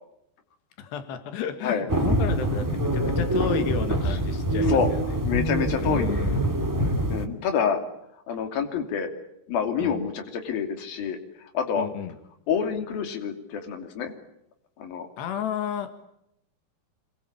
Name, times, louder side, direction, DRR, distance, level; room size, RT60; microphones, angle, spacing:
voice 1, 0.8-5.0 5.7-7.0 9.8-10.0 11.8-12.2 15.2-16.0, left 8 dB, 90° left, 9 dB, 3.9 m, -33 dB
sound 1, 1.9-7.3, right 1 dB, 10° right, 1.3 m, -25 dB
voice 2, 5.3-6.4 7.1-7.8 8.3-9.1 9.5-11.2 11.5-11.9 12.5-14.1 14.8-15.1, left 7 dB, 60° left, 6 dB, 4.5 m, -27 dB
26.5 x 24.0 x 8.6 m, 0.80 s
omnidirectional pair, 4.8 m